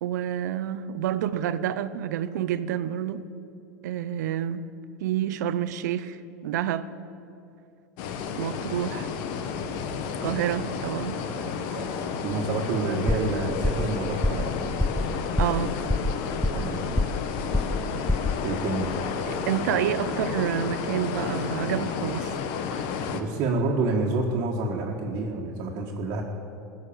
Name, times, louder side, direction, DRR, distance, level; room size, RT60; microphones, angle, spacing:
voice 1, 0.0-3.2 3.8-4.6 5.0-6.9 8.4-9.1 10.2-11.2 15.4-15.8 19.5-22.4, right 10 dB, 75° right, 0.6 m, -28 dB
sound 1, 8.0-23.2, left 6 dB, 60° left, 1.1 m, -31 dB
voice 2, 11.3-11.9 12.2-14.5 16.5-16.8 18.4-18.9 23.1-26.2, right 3 dB, 55° right, 1.6 m, -28 dB
sound 2, 13.1-13.4 13.6-13.9 14.2-14.5 14.8-15.1 15.4-15.6 15.9-16.7 17.0-17.3 17.5-17.8 18.1-18.4, left 2 dB, 5° left, 0.5 m, -25 dB
16.0 x 6.4 x 8.7 m
hypercardioid pair, 95°, 9 cm